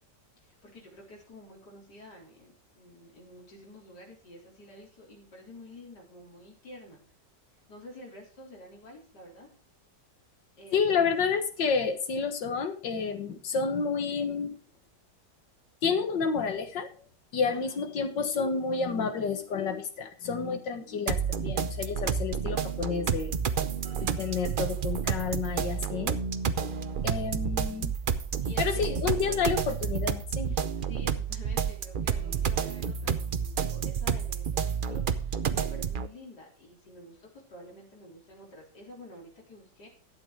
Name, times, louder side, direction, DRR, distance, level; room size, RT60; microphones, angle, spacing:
voice 1, 0.4-7.0 7.7-9.5 10.6-10.9 17.5-17.8 23.6-24.0 28.4-29.0 30.5-39.9, left 1 dB, 70° left, -2 dB, 4.3 m, -49 dB
voice 2, 10.7-14.6 15.8-16.9 17.3-23.4 24.2-26.2 27.0-27.9 28.6-30.6, left 5 dB, 90° left, 8 dB, 2.1 m, -30 dB
sound 1, 21.1-36.1, right 7 dB, 70° right, 0.5 m, -30 dB
12.0 x 8.4 x 4.7 m, 0.41 s
omnidirectional pair, 1.9 m